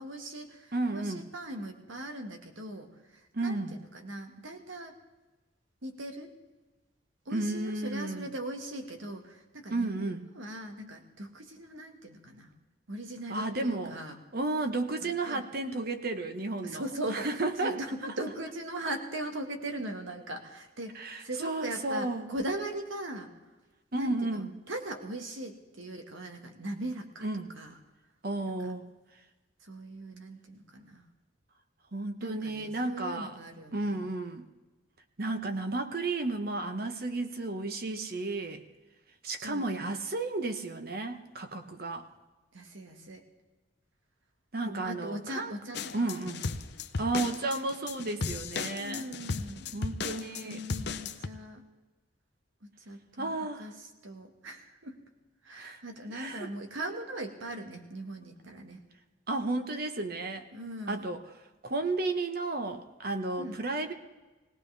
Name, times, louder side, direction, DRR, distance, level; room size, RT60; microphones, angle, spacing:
voice 1, 0.0-2.9 3.4-5.0 5.8-6.3 7.2-12.5 12.9-14.1 15.0-15.4 16.6-17.3 17.6-23.3 24.0-27.3 27.6-27.7 28.6-28.7 29.6-31.0 32.2-34.0 39.4-39.7 42.5-43.2 44.6-46.2 48.8-49.7 50.1-51.6 52.6-53.7 54.0-55.0 55.4-58.8 60.5-61.1 63.4-63.6, right 1 dB, 85° right, 4 dB, 1.8 m, -40 dB
voice 2, 0.7-1.2 3.3-3.8 7.3-8.3 9.7-10.3 13.3-14.0 14.3-16.8 17.1-17.8 20.9-22.3 23.9-24.5 27.2-27.5 28.2-28.9 31.9-33.4 33.7-34.5 35.2-38.6 39.2-42.0 44.5-45.6 45.9-46.4 47.0-49.1 49.7-50.6 53.2-53.7 55.5-55.8 56.1-56.5 59.3-60.5 60.9-61.2 61.6-63.9, right 2 dB, 50° right, 7 dB, 1.1 m, -33 dB
sound 1, 45.7-51.3, left 4 dB, 60° left, 0.7 m, -36 dB
19.5 x 18.0 x 3.5 m, 1.2 s
head